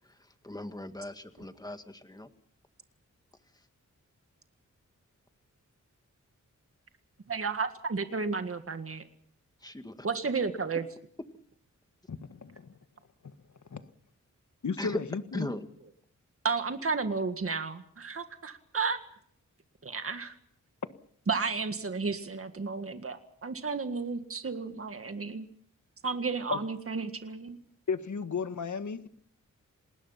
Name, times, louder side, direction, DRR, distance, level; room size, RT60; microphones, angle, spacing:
voice 1, 0.4-2.3 9.6-9.9 14.8-15.0 15.3-15.7, left 1 dB, 10° left, 8 dB, 1.9 m, -37 dB
voice 2, 7.3-9.0 10.0-10.8 16.4-19.0 19.8-20.3 21.3-25.5 26.0-27.6, right 4 dB, 45° right, 8 dB, 1.9 m, -32 dB
voice 3, 12.1-12.7 13.2-13.3 13.7-13.8 14.6-15.5 26.5-26.6 27.9-29.1, left 5 dB, 65° left, 10 dB, 1.6 m, -34 dB
29.0 x 20.5 x 5.8 m, 0.63 s
wide cardioid pair, 95°, 31 cm